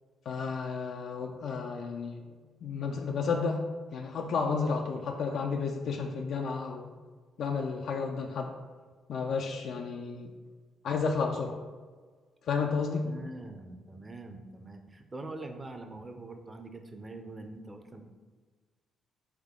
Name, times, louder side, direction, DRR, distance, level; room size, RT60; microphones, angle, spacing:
voice 1, 0.3-2.2 2.6-3.6 3.9-6.9 7.4-8.5 9.1-10.3 10.8-11.6 12.4-13.1, left 5 dB, 70° left, 2 dB, 0.4 m, -32 dB
voice 2, 13.0-18.0, right 2 dB, 25° right, 5 dB, 0.5 m, -44 dB
3.9 x 3.5 x 3.6 m, 1.4 s
cardioid pair, 90°, 0 cm